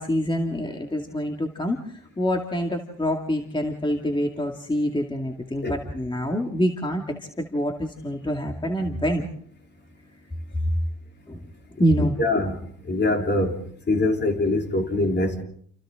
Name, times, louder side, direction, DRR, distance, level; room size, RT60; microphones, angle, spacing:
voice 1, 0.0-9.3 11.3-11.4 11.8-12.2, equal, 15° left, 2.3 m, -26 dB
voice 2, 12.2-12.6 12.9-13.6 13.9-15.4, left 2 dB, 35° left, 3.5 m, -23 dB
29.0 x 28.5 x 3.8 m
cardioid pair, 90°, 30 cm